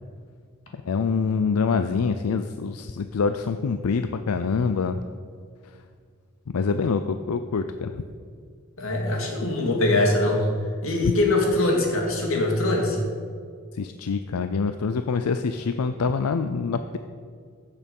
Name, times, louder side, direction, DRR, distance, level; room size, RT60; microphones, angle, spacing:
voice 1, 0.7-5.0 6.5-8.0 13.7-17.0, left 5 dB, 90° left, 9 dB, 0.5 m, -25 dB
voice 2, 8.8-10.5 10.8-13.0, left 2 dB, 70° left, 0 dB, 2.3 m, -22 dB
15.0 x 6.7 x 5.4 m, 2.1 s
head